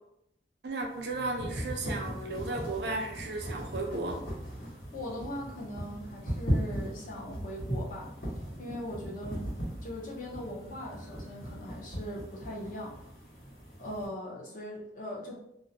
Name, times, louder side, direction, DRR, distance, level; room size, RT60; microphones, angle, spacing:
voice 1, 0.6-4.2, right 2 dB, 60° right, 2 dB, 0.5 m, -34 dB
sound 1, 0.8-14.1, equal, 60° left, 1.2 m, -38 dB
voice 2, 4.9-8.1 8.6-9.5 9.8-12.9 13.8-15.3, left 1 dB, 45° left, -3 dB, 0.6 m, -40 dB
2.5 x 2.1 x 2.6 m, 0.77 s
head